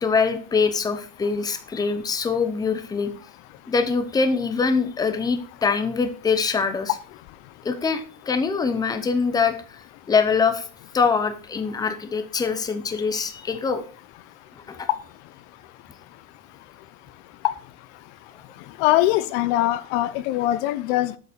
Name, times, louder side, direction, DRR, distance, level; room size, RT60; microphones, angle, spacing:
voice 1, 0.0-3.1 3.7-6.9 7.6-9.8 10.1-10.7 10.9-13.8, left 5 dB, 10° left, 0.7 m, -23 dB
voice 2, 18.8-21.2, left 15 dB, 65° left, 0.6 m, -22 dB
8.1 x 5.3 x 5.0 m
supercardioid pair, 150°, 36 cm